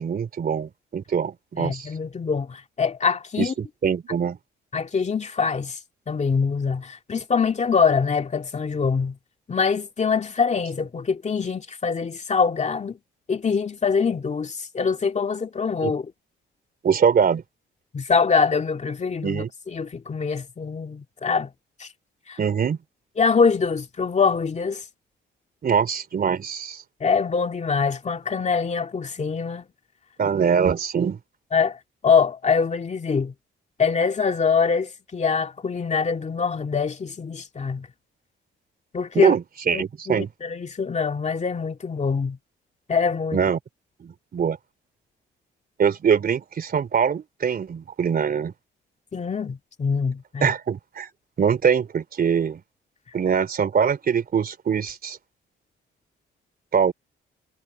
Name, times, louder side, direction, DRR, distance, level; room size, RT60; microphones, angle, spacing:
voice 1, 0.0-1.9 3.4-3.5 3.8-4.4 15.8-15.9 16.8-17.4 19.2-19.5 22.4-22.8 25.6-26.8 30.2-31.2 39.1-40.3 43.3-43.6 44.0-44.6 45.8-48.5 50.4-51.1 51.4-52.6 53.1-55.2 56.7-56.9, right 7 dB, 50° right, 3.3 m, -23 dB
voice 2, 1.6-3.5 4.7-5.8 6.1-9.2 9.5-13.0 13.3-16.1 17.9-21.5 21.8-21.9 22.3-22.4 23.2-24.8 27.0-29.7 31.5-33.3 33.8-37.9 38.9-39.3 39.7-42.4 42.9-43.4 49.1-50.5, left 5 dB, 35° left, 2.2 m, -24 dB
cardioid pair, 90°, 20 cm